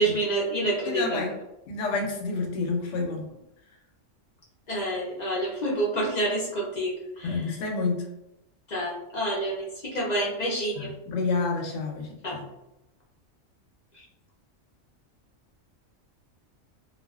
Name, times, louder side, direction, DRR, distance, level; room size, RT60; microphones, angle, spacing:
voice 1, 0.0-1.2 4.7-7.4 8.7-10.9 12.2-12.4, right 1 dB, 55° left, -4 dB, 0.5 m, -28 dB
voice 2, 0.9-1.3 1.7-3.2 7.2-8.0 10.8-12.4, left 3 dB, 75° left, 2 dB, 0.9 m, -29 dB
2.3 x 2.3 x 2.3 m, 0.90 s
omnidirectional pair, 1.3 m